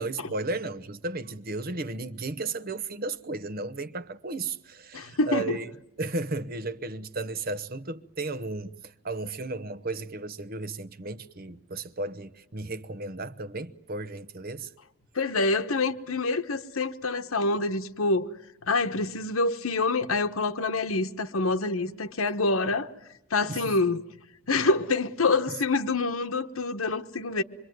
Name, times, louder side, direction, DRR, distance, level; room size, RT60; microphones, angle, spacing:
voice 1, 0.0-5.7 6.0-14.7 23.5-23.8, right 3 dB, 45° right, 1.0 m, -34 dB
voice 2, 4.9-5.6 15.1-18.3 18.7-22.9 23.3-24.0 24.5-27.4, left 3 dB, 85° left, 1.2 m, -26 dB
26.0 x 24.0 x 9.3 m
head